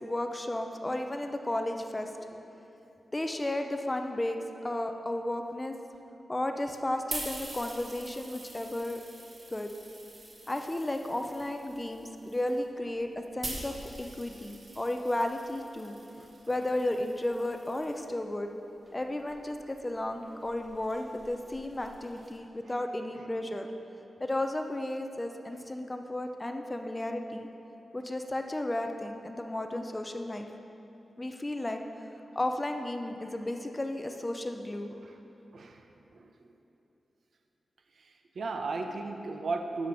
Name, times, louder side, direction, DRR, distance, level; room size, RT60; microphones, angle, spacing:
voice 1, 0.0-2.1 3.1-4.4 4.6-5.7 6.3-9.0 9.5-9.7 10.5-15.9 16.5-18.5 18.9-23.7 24.2-27.5 27.9-30.5 31.2-32.1 32.4-34.9, left 1 dB, 15° left, 5 dB, 0.5 m, -33 dB
sound 1, 6.7-18.1 18.8-22.4, right 1 dB, 30° right, 1.3 m, -45 dB
voice 2, 35.5-35.8 36.1-36.3 38.0-39.9, right 3 dB, 60° right, 5 dB, 0.7 m, -35 dB
11.5 x 5.1 x 6.9 m, 2.9 s
wide cardioid pair, 175°, 0 cm